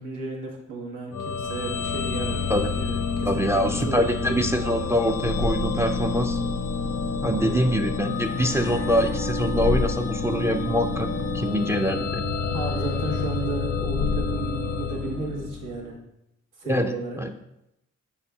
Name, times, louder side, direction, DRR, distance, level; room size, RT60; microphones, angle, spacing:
voice 1, 0.0-3.5 3.9-4.1 7.3-7.6 12.5-16.0 16.6-17.2, right 3 dB, 80° right, -3 dB, 1.2 m, -34 dB
sound 1, 1.1-15.8, left 4 dB, 80° left, 0.6 m, -28 dB
voice 2, 3.2-6.4 7.2-11.1 11.3-12.2 16.6-17.3, equal, 10° right, 6 dB, 0.3 m, -24 dB
5.2 x 4.2 x 2.3 m, 0.85 s
supercardioid pair, 55°, 31 cm